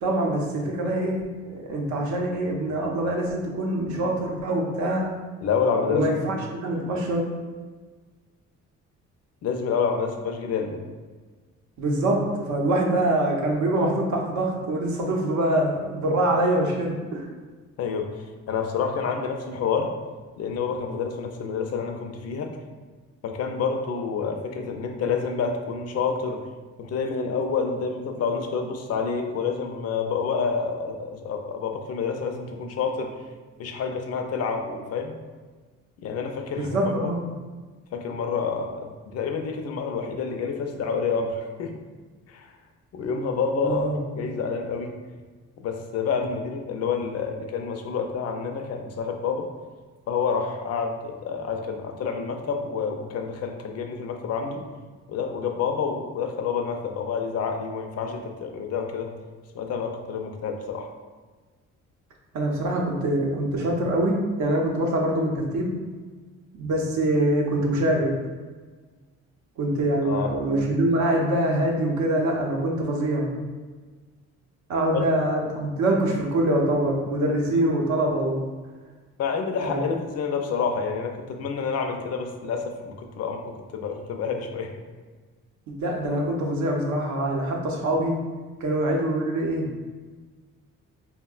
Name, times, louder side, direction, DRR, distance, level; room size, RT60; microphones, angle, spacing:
voice 1, 0.0-5.1 5.9-7.3 11.8-17.3 36.5-37.3 43.6-43.9 62.3-65.8 66.5-68.2 69.6-73.3 74.7-78.4 79.6-79.8 85.8-88.2 88.6-89.7, right 1 dB, 75° right, 0 dB, 0.6 m, -24 dB
voice 2, 5.4-6.0 9.4-10.8 17.8-19.9 20.4-22.6 23.2-26.4 26.8-33.1 33.6-35.2 36.0-37.1 37.9-41.8 42.3-42.5 42.9-45.0 45.6-49.5 50.1-54.6 55.1-59.1 59.5-60.9 70.0-70.3 74.9-75.0 79.2-84.7, left 5 dB, 55° left, 4 dB, 0.4 m, -28 dB
3.4 x 2.1 x 2.3 m, 1.4 s
cardioid pair, 90°, 30 cm